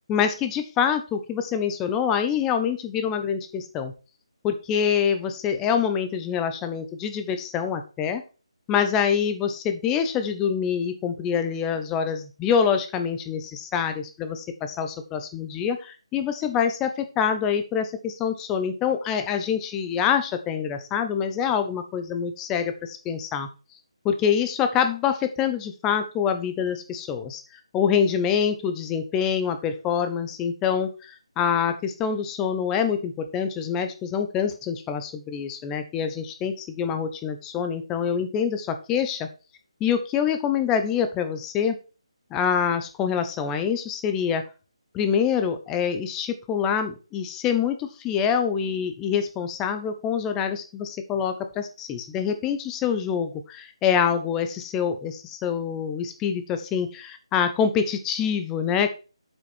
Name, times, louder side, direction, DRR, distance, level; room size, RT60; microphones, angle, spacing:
voice 1, 0.1-3.9 4.4-8.2 8.7-23.5 24.0-27.4 27.7-39.3 39.8-41.8 42.3-44.4 44.9-58.9, left 7 dB, 10° left, 8 dB, 0.7 m, -25 dB
7.6 x 6.0 x 4.4 m, 0.33 s
figure-of-eight pair, 165°, 3 cm